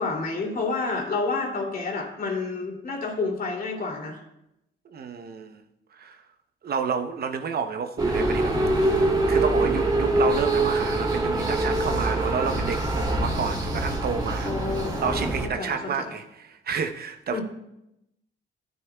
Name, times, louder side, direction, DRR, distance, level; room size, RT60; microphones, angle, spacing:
voice 1, 0.0-4.2 14.4-15.3 15.6-15.9 17.3-17.4, left 3 dB, 45° left, 0 dB, 2.8 m, -29 dB
voice 2, 4.9-5.6 6.0-6.2 6.6-8.6 8.9-14.7 15.0-17.4, right 6 dB, 50° right, 7 dB, 0.8 m, -30 dB
sound 1, 8.0-15.5, right 2 dB, 20° right, 2.4 m, -24 dB
14.5 x 9.5 x 2.3 m, 0.86 s
cardioid pair, 90°, 20 cm